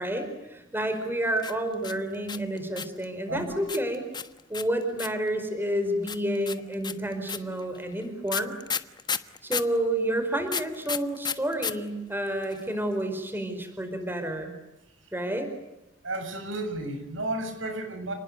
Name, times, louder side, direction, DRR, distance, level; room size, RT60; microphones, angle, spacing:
voice 1, 0.0-4.0 4.5-8.6 9.4-14.5 15.1-15.5, right 1 dB, 10° right, 7 dB, 4.7 m, -29 dB
sound 1, 1.4-3.0 3.7-5.3 6.1-9.8 10.5-11.7 12.0-12.1 12.3-12.8, left 6 dB, 25° left, 1.3 m, -32 dB
voice 2, 3.3-3.6 16.0-18.1, right 1 dB, 85° right, 7 dB, 7.2 m, -32 dB
30.0 x 20.0 x 9.5 m, 0.95 s
head